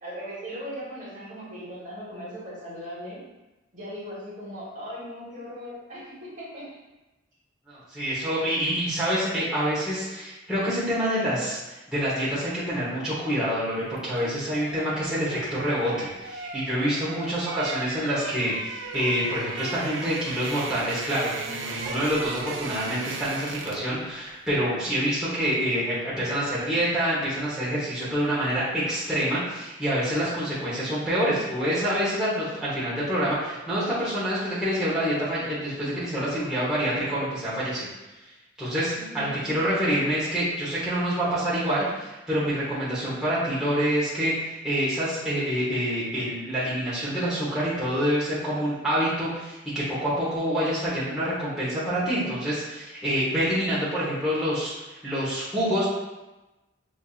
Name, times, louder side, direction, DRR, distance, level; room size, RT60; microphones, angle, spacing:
voice 1, 0.0-3.2 3.7-6.7 17.1-17.5 24.8-25.1 38.9-39.5, equal, 40° right, -6 dB, 1.1 m, -39 dB
voice 2, 7.7-37.9 38.6-54.7 55.0-55.9, equal, 5° right, -11 dB, 1.0 m, -27 dB
sound 1, 14.0-24.0 24.2-24.4, right 3 dB, 65° right, 0.4 m, -37 dB
5.2 x 2.6 x 2.4 m, 1.1 s
head